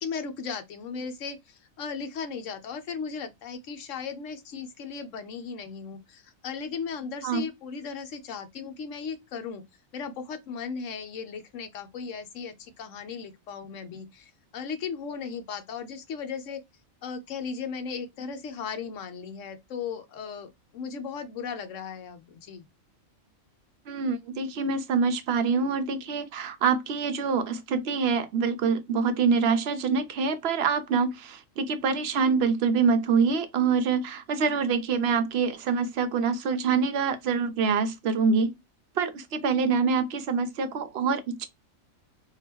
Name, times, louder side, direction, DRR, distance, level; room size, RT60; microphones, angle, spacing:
voice 1, 0.0-9.6 9.9-16.6 17.0-22.7, left 6 dB, 70° left, 1.0 m, -36 dB
voice 2, 23.9-38.5 39.0-41.5, right 5 dB, 60° right, 0.8 m, -25 dB
3.8 x 2.4 x 2.9 m
omnidirectional pair, 1.4 m